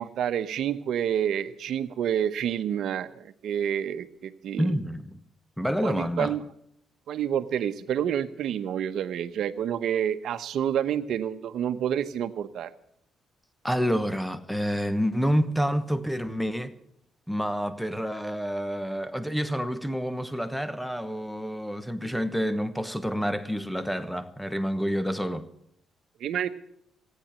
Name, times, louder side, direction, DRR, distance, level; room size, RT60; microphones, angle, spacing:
voice 1, 0.0-4.7 5.8-6.4 7.1-12.7 26.2-26.5, right 9 dB, 70° right, 1.0 m, -28 dB
voice 2, 4.6-5.2 5.6-6.3 13.6-16.7 17.3-25.4, equal, ahead, 1.1 m, -28 dB
15.0 x 10.0 x 8.8 m
cardioid pair, 90°, 0 cm